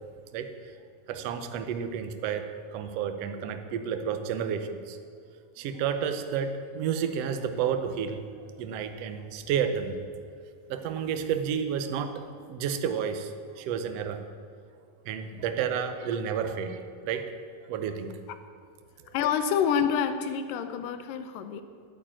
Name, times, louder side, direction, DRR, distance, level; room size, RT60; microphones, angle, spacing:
voice 1, 1.1-2.5 2.7-5.0 5.6-8.2 8.6-10.0 10.7-12.2 12.5-14.2 15.0-17.2 17.7-18.1, right 7 dB, 65° right, 7 dB, 1.6 m, -31 dB
voice 2, 19.1-21.6, left 7 dB, 80° left, 9 dB, 2.5 m, -27 dB
12.0 x 9.2 x 8.9 m, 2.2 s
omnidirectional pair, 3.9 m